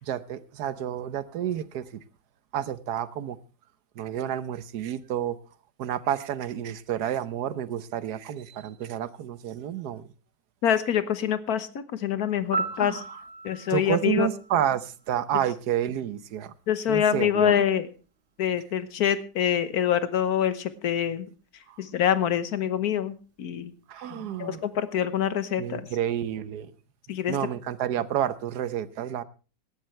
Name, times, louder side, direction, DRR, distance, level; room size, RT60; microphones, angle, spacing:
voice 1, 0.0-2.0 2.5-3.4 3.9-5.4 5.8-10.1 12.7-13.2 13.7-16.5 16.9-17.6 21.7-21.8 23.9-24.6 25.6-26.7 27.1-29.2, right 10 dB, 65° right, 15 dB, 1.4 m, -30 dB
voice 2, 10.6-13.0 13.4-14.3 16.7-17.9 18.4-21.3 21.8-23.7 24.1-25.8 27.1-27.3, left 9 dB, 60° left, 13 dB, 1.5 m, -25 dB
Piano, 12.5-15.5 23.6-23.8, right 3 dB, 30° right, 1.7 m, -36 dB
18.5 x 12.5 x 3.2 m, 0.33 s
omnidirectional pair, 1.9 m